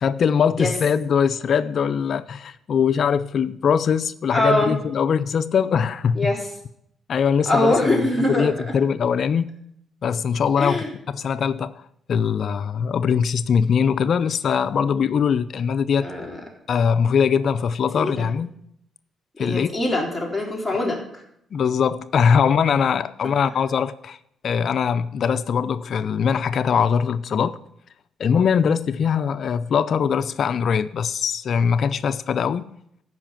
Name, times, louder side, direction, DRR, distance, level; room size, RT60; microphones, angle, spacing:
voice 1, 0.0-6.3 7.1-8.0 8.4-9.5 10.0-10.8 11.1-11.7 12.1-16.1 16.7-18.5 19.4-19.7 21.5-24.2 24.4-27.6 28.2-32.7, left 7 dB, 55° left, 0.4 m, -21 dB
voice 2, 4.3-4.7 6.2-6.4 7.5-8.7 10.6-10.9 16.0-16.4 18.0-18.3 19.4-21.2 23.2-23.3, left 1 dB, ahead, 3.4 m, -23 dB
14.0 x 5.7 x 7.4 m
cardioid pair, 120°, 0 cm